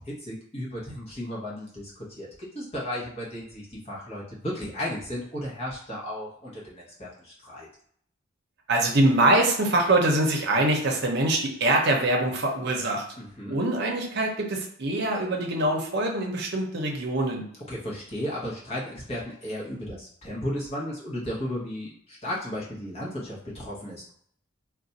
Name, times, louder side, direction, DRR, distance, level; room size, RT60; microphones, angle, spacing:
voice 1, 0.0-7.7 13.2-13.6 17.7-24.0, equal, 30° left, -6 dB, 1.0 m, -34 dB
voice 2, 8.7-13.0 13.5-17.4, right 1 dB, 55° right, 1 dB, 0.7 m, -24 dB
2.5 x 2.2 x 4.0 m, 0.66 s
head